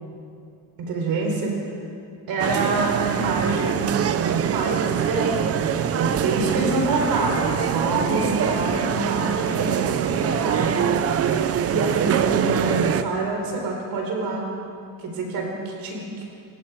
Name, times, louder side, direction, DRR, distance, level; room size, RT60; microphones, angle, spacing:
voice 1, 0.8-1.5 2.3-3.9 4.2-10.9 11.6-14.5 15.0-16.2, right 3 dB, 50° right, 1 dB, 4.7 m, -26 dB
sound 1, 2.4-13.0, right 8 dB, 35° right, 0.7 m, -24 dB
27.0 x 18.5 x 5.3 m, 2.4 s
cardioid pair, 150°, 44 cm